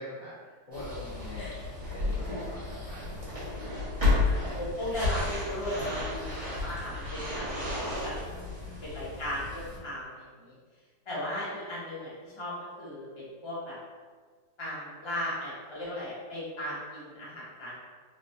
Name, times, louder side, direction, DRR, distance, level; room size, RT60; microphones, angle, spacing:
voice 1, 0.0-1.5 1.9-4.4 8.3-8.9, left 1 dB, 55° left, -6 dB, 1.1 m, -45 dB
sound 1, 0.7-9.8, left 2 dB, 25° right, 0.9 m, -32 dB
voice 2, 4.2-8.1 8.8-10.5 11.1-12.1 12.3-13.8 14.6-17.7, left 1 dB, 30° left, -8 dB, 0.5 m, -37 dB
4.0 x 3.0 x 2.6 m, 1.5 s
omnidirectional pair, 2.1 m